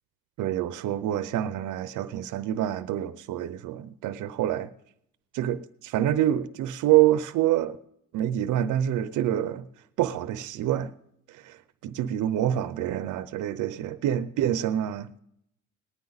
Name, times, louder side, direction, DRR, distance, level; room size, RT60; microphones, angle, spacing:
voice 1, 0.4-4.7 5.3-7.8 8.1-9.6 10.0-10.9 11.4-11.6 11.8-15.1, right 12 dB, 85° right, 0.7 m, -26 dB
19.0 x 10.5 x 4.0 m
cardioid pair, 90°, 30 cm